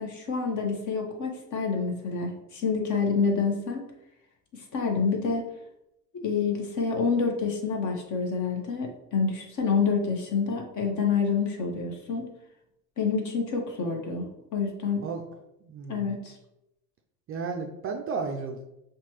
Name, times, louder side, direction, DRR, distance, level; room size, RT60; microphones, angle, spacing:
voice 1, 0.0-3.8 4.5-5.5 6.1-12.3 13.0-14.3 14.5-15.0 15.9-16.3, left 5 dB, 40° left, 2 dB, 1.1 m, -27 dB
voice 2, 15.6-16.2 17.3-18.6, right 4 dB, 30° right, 3 dB, 0.4 m, -33 dB
5.5 x 2.3 x 3.1 m, 0.86 s
hypercardioid pair, 80°, 47 cm